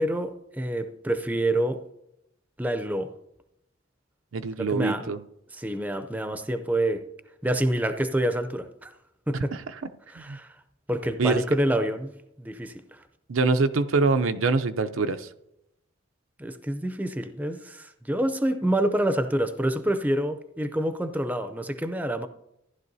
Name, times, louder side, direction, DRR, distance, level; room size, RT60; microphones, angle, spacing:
voice 1, 0.0-1.8 2.6-3.1 4.6-5.1 5.5-7.0 7.4-8.9 9.3-9.6 10.1-10.5 10.9-12.1 12.4-13.0 16.4-22.3, right 1 dB, 10° right, 0.5 m, -27 dB
voice 2, 4.3-5.2 10.3-10.4 11.2-11.4 13.3-15.3, right 3 dB, 90° right, 0.6 m, -24 dB
15.0 x 11.0 x 2.7 m
head